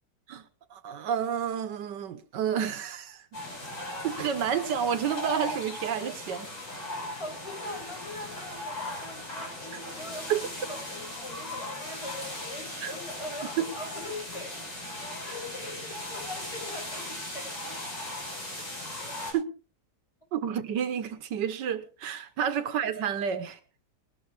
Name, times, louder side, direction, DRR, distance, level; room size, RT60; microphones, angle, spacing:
voice 1, 0.7-3.4 4.0-6.5 10.3-10.4 12.8-12.9 13.6-13.7 19.3-19.5 20.3-23.6, right 8 dB, 90° right, 1.7 m, -30 dB
sound 1, 3.3-19.3, left 1 dB, 45° left, 6.7 m, -38 dB
voice 2, 6.8-14.8 15.2-17.9, left 2 dB, 15° left, 6.6 m, -42 dB
20.5 x 12.5 x 3.3 m
omnidirectional pair, 1.8 m